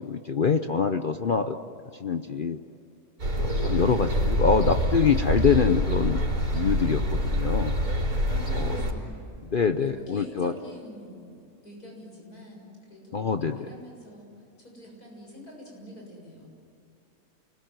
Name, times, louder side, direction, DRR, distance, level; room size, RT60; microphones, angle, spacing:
voice 1, 0.0-1.5 2.0-2.6 3.4-6.2 6.5-7.7 8.6-8.7 9.5-10.5 13.1-13.6, left 6 dB, 45° left, 8 dB, 0.8 m, -25 dB
sound 1, 3.2-8.9, equal, 75° right, 4.5 m, -26 dB
voice 2, 3.9-4.2 8.3-9.2 9.8-16.5, equal, 80° left, -1 dB, 7.4 m, -45 dB
29.0 x 21.0 x 9.5 m, 2.6 s
omnidirectional pair, 1.6 m